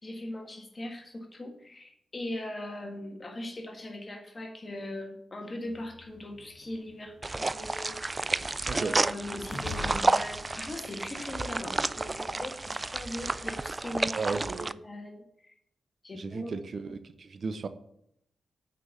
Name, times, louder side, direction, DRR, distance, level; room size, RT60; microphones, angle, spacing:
voice 1, 0.0-8.4 8.7-14.2 14.5-15.5 16.0-16.5, left 1 dB, 35° left, 3 dB, 1.7 m, -40 dB
sound 1, 5.7-12.4, left 3 dB, 80° left, 1.7 m, -47 dB
sound 2, 7.2-14.7, right 2 dB, 30° right, 0.3 m, -31 dB
voice 2, 14.0-14.7 16.1-17.7, right 4 dB, 60° right, 11 dB, 0.8 m, -35 dB
6.4 x 5.3 x 7.0 m, 0.75 s
cardioid pair, 60°, 0 cm